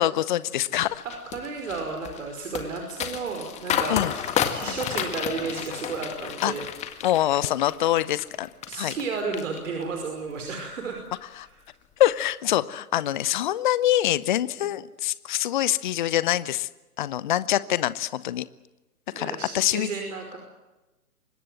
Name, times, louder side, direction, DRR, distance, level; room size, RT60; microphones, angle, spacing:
voice 1, 0.0-1.0 3.9-4.1 6.4-6.5 7.0-8.5 8.8-9.0 12.0-16.7 17.0-18.4 19.2-19.9, left 13 dB, 30° left, 17 dB, 0.8 m, -24 dB
sound 1, 0.8-9.0 9.3-10.0 10.4-10.7, left 9 dB, 15° left, 1.9 m, -31 dB
voice 2, 1.0-6.6 7.8-7.9 8.7-11.0 11.4-11.6 14.5-14.6 19.1-20.4, right 4 dB, 55° right, 4 dB, 5.3 m, -33 dB
25.0 x 20.5 x 7.7 m, 1.1 s
figure-of-eight pair, 135°, 45 cm